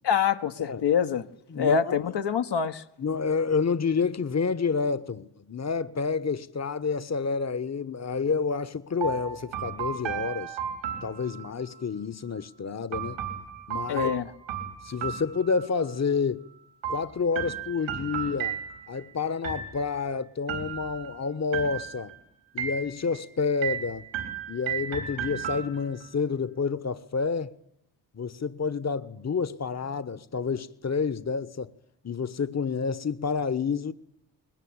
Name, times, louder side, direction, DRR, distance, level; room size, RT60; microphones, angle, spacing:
voice 1, 0.0-1.3 1.5-2.8 13.9-14.2, left 7 dB, 65° left, 1.5 m, -25 dB
voice 2, 1.5-2.0 3.0-10.6 11.0-13.2 13.7-14.1 14.8-16.5 16.9-18.6 18.9-22.1 22.5-24.0 24.5-27.5 28.1-31.7 32.0-33.9, left 5 dB, 35° left, 1.3 m, -29 dB
sound 1, 9.0-11.8 12.9-15.9 16.8-19.0 19.4-20.1 20.5-21.2 21.5-22.2 22.6-23.2 23.6-26.1, right 8 dB, 90° right, 4.3 m, -34 dB
20.5 x 20.0 x 8.9 m
supercardioid pair, 40°, 45 cm